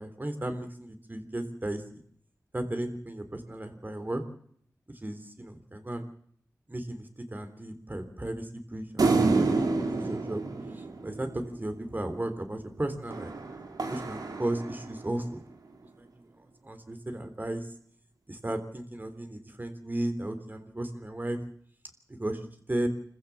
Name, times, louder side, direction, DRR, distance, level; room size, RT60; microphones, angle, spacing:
voice 1, 0.0-1.8 2.5-4.2 5.0-6.1 6.7-10.4 10.7-13.3 13.9-15.4 16.0-16.1 16.6-17.7 18.3-21.4 22.1-22.9, right 1 dB, 30° right, 8 dB, 3.5 m, -35 dB
sound 1, 9.0-11.7 13.1-15.2, right 3 dB, 75° right, 3.0 m, -28 dB
26.5 x 15.0 x 7.3 m, 0.63 s
cardioid pair, 55°, 7 cm